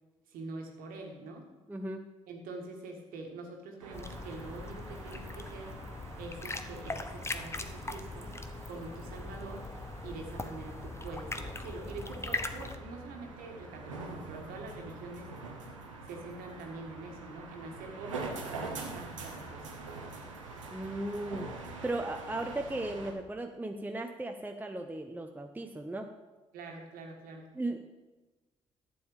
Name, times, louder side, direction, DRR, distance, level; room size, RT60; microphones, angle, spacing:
voice 1, 0.3-1.5 2.3-5.7 6.2-8.3 8.7-9.6 10.0-15.3 16.0-19.7 26.5-27.5, right 3 dB, 65° right, 2 dB, 1.7 m, -45 dB
voice 2, 1.7-2.1 20.7-21.5 21.8-26.1 27.5-27.8, right 2 dB, 10° right, 4 dB, 0.8 m, -36 dB
sound 1, 3.8-23.1, right 3 dB, 90° right, 0.9 m, -45 dB
sound 2, 3.9-12.8, left 2 dB, 15° left, 0.9 m, -40 dB
11.0 x 7.1 x 5.0 m, 1.2 s
figure-of-eight pair, 40°, 16 cm